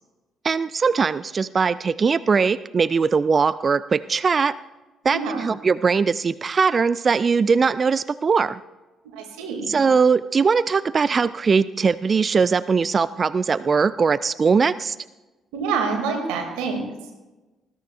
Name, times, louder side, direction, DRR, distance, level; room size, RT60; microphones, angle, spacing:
voice 1, 0.4-4.5 5.0-8.6 9.7-15.0, right 5 dB, 40° right, 17 dB, 0.3 m, -20 dB
voice 2, 5.0-5.5 9.2-9.8 15.5-16.9, right 5 dB, 70° right, 3 dB, 2.4 m, -27 dB
20.0 x 14.5 x 2.4 m, 1.1 s
figure-of-eight pair, 45°, 0 cm